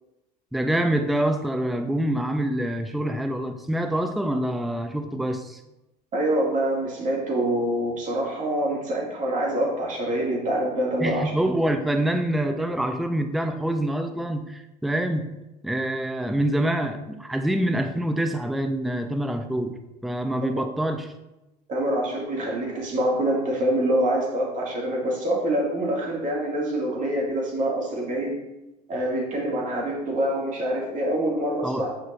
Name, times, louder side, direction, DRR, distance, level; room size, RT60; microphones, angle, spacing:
voice 1, 0.5-5.6 11.0-15.3 15.6-21.1 31.6-31.9, right 1 dB, ahead, 7 dB, 0.5 m, -26 dB
voice 2, 6.1-11.3 21.7-28.4 28.9-31.9, right 1 dB, 35° right, -2 dB, 2.3 m, -25 dB
8.9 x 6.0 x 2.6 m, 0.96 s
figure-of-eight pair, 70°, 21 cm